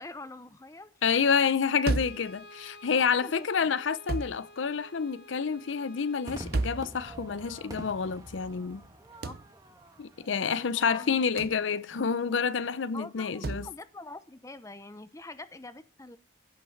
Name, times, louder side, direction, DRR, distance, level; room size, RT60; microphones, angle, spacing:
voice 1, 0.0-1.3 3.0-3.3 3.6-3.7 9.2-9.4 10.5-11.2 12.9-16.2, left 2 dB, 15° left, 0.7 m, -45 dB
voice 2, 1.0-8.8 10.0-13.7, left 6 dB, 90° left, 0.6 m, -28 dB
Brass instrument, 1.9-6.5, left 1 dB, 70° left, 2.4 m, -51 dB
sound 1, 1.9-2.3 4.1-4.4 6.5-6.9 9.2-9.5 11.4-11.6 13.4-13.7, right 3 dB, 55° right, 0.5 m, -31 dB
Crowd / Fireworks, 6.3-12.8, right 1 dB, 20° right, 1.3 m, -47 dB
16.0 x 5.9 x 5.8 m
head